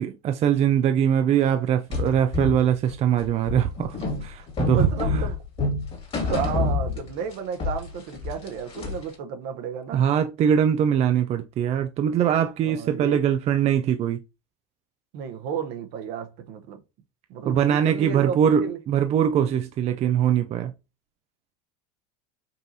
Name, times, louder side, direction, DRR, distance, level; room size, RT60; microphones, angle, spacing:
voice 1, 0.0-5.2 9.9-14.2 17.4-20.7, right 9 dB, 35° right, 0.4 m, -22 dB
sound 1, 1.9-7.3 7.6-9.1, left 3 dB, 30° left, 1.9 m, -28 dB
voice 2, 4.7-5.4 6.2-10.0 12.6-13.2 15.1-16.8 17.3-18.8, right 7 dB, 60° right, 0.9 m, -32 dB
5.4 x 2.6 x 2.7 m
supercardioid pair, 105°, 19 cm